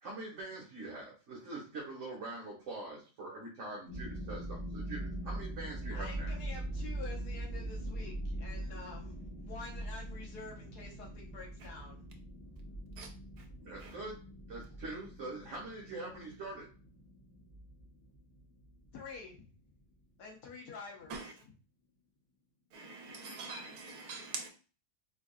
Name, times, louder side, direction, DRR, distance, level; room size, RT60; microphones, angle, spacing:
voice 1, 0.0-6.3 13.6-14.2 14.5-16.7, right 2 dB, 55° right, 1.4 m, -44 dB
sound 1, 3.9-19.8, right 1 dB, 25° left, 1.2 m, -42 dB
voice 2, 5.9-12.1 13.5-13.6 18.9-19.4 20.2-21.2, left 4 dB, 85° left, 1.5 m, -48 dB
voice 3, 22.7-24.5, right 4 dB, 70° right, 1.3 m, -44 dB
3.8 x 3.5 x 2.2 m
omnidirectional pair, 1.7 m